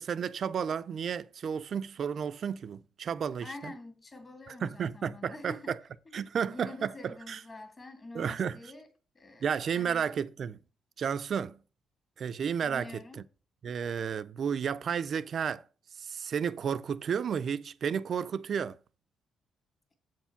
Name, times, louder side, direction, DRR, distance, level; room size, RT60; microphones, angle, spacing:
voice 1, 0.0-3.7 4.5-5.8 6.1-7.4 8.1-8.6 9.4-10.6 11.0-11.6 12.2-13.2 13.6-15.6 16.0-18.8, right 7 dB, 55° right, 0.4 m, -32 dB
voice 2, 3.4-5.7 6.1-6.2 6.5-8.9 9.1-10.1 12.6-13.2, left 2 dB, 30° left, 2.0 m, -47 dB
7.6 x 4.6 x 5.8 m
cardioid pair, 90°, 0 cm